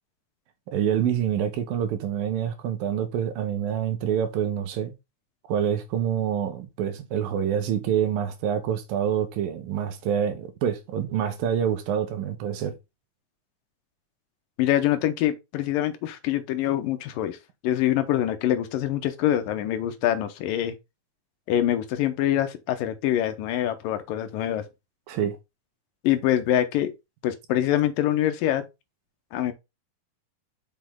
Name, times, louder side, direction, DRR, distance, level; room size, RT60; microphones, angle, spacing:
voice 1, 0.7-4.9 5.5-12.7 25.1-25.4, right 9 dB, 90° right, 2.9 m, -26 dB
voice 2, 14.6-17.4 17.6-20.7 21.5-24.7 26.0-26.9 27.2-28.7 29.3-29.5, left 12 dB, 80° left, 2.6 m, -25 dB
6.3 x 5.9 x 3.7 m
omnidirectional pair, 4.0 m